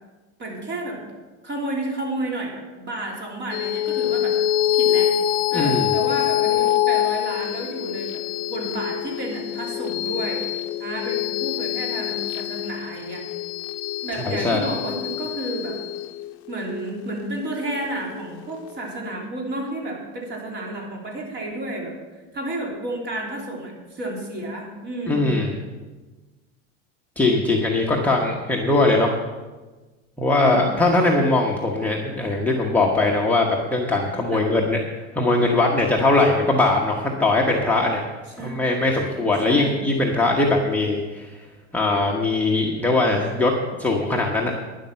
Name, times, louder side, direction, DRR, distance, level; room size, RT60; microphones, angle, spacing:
voice 1, 0.4-1.0 1.4-4.4 4.7-5.1 5.5-8.2 8.5-10.4 10.8-13.2 14.0-15.8 16.5-21.9 22.3-25.2 30.4-30.7 34.3-34.5 38.4-38.6 39.5-39.8, right 1 dB, 30° right, -1 dB, 3.5 m, -31 dB
sound 1, 3.5-18.3, left 12 dB, 50° left, 0.6 m, -25 dB
voice 2, 5.5-6.0 14.2-14.6 25.1-25.5 27.2-29.1 30.2-34.8 35.1-38.0 38.4-41.3 41.7-43.5 43.8-44.5, left 2 dB, 5° left, -3 dB, 1.1 m, -20 dB
12.0 x 10.5 x 5.7 m, 1.2 s
supercardioid pair, 145°, 34 cm